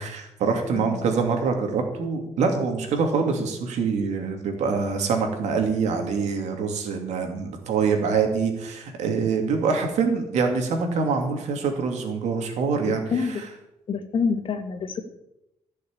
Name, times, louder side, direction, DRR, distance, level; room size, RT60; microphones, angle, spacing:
voice 1, 0.0-13.5, right 5 dB, 85° right, 4 dB, 2.7 m, -25 dB
voice 2, 0.7-1.1 12.9-13.4 13.9-15.0, left 5 dB, 50° left, 6 dB, 2.1 m, -27 dB
15.0 x 6.5 x 8.7 m, 0.86 s
cardioid pair, 140°, 12 cm